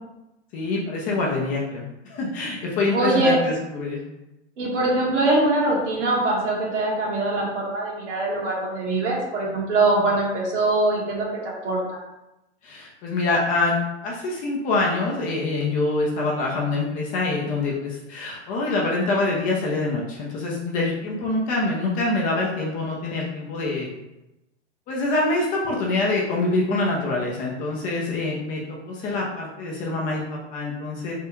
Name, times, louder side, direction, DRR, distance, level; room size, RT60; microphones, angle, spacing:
voice 1, 0.5-4.0 12.6-13.8 14.0-23.9 24.9-28.6 28.9-31.1, left 2 dB, 25° left, -3 dB, 0.4 m, -25 dB
voice 2, 2.9-3.4 4.6-11.3 11.6-11.8, right 2 dB, 70° right, -3 dB, 1.4 m, -22 dB
3.4 x 2.3 x 2.9 m, 0.95 s
hypercardioid pair, 125°, 36 cm